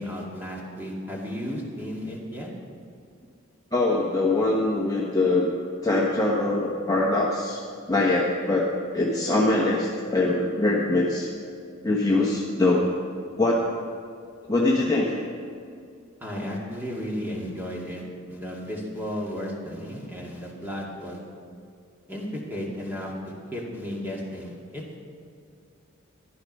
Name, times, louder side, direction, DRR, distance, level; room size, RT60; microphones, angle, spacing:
voice 1, 0.0-2.5 16.2-18.0 18.3-21.2 22.1-23.1 23.5-25.0, equal, 10° right, -3 dB, 2.2 m, -34 dB
voice 2, 3.7-5.5 5.8-7.6 7.9-8.7 8.9-11.3 11.8-12.9 13.4-13.8 14.5-15.3, left 2 dB, 20° left, -4 dB, 1.2 m, -23 dB
14.5 x 11.5 x 5.4 m, 2.3 s
head